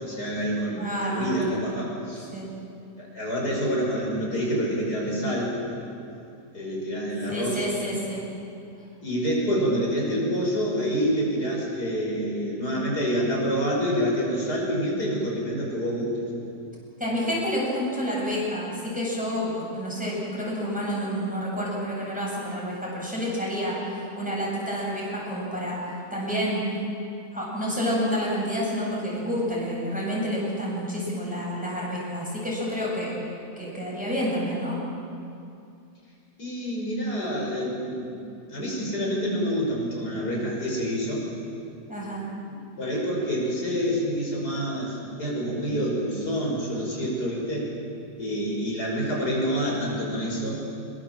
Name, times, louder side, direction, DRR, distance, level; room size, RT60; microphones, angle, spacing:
voice 1, 0.0-2.3 3.0-5.9 6.5-7.7 9.0-16.1 36.4-38.2 38.5-41.2 42.1-42.2 42.5-47.7 48.2-50.6, equal, 80° left, -3 dB, 6.7 m, -27 dB
voice 2, 0.8-1.5 2.3-2.5 7.3-8.2 17.0-26.7 27.3-33.1 33.6-34.8 41.9-42.2, equal, 5° right, -5 dB, 7.6 m, -29 dB
25.0 x 23.0 x 7.8 m, 2.6 s
omnidirectional pair, 1.7 m